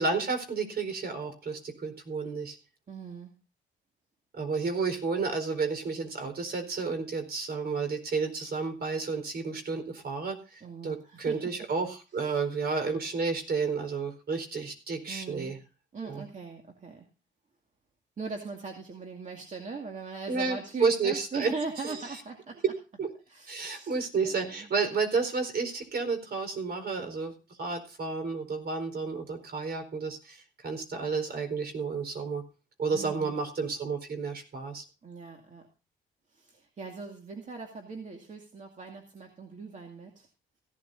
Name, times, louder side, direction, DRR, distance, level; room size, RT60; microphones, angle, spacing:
voice 1, 0.0-2.6 4.3-15.6 16.0-16.2 20.3-21.5 21.9-22.0 22.6-22.7 23.0-23.1 23.5-27.3 27.6-32.4 32.8-34.8, right 4 dB, 55° right, 8 dB, 4.4 m, -31 dB
voice 2, 2.9-3.3 10.6-11.4 12.2-12.4 15.1-15.5 15.9-17.1 18.2-22.6 23.3-24.0 24.2-24.7 32.9-33.4 35.0-35.7 36.3-40.3, right 4 dB, 40° right, 3 dB, 2.3 m, -40 dB
16.5 x 12.0 x 2.7 m, 0.32 s
cardioid pair, 90°, 20 cm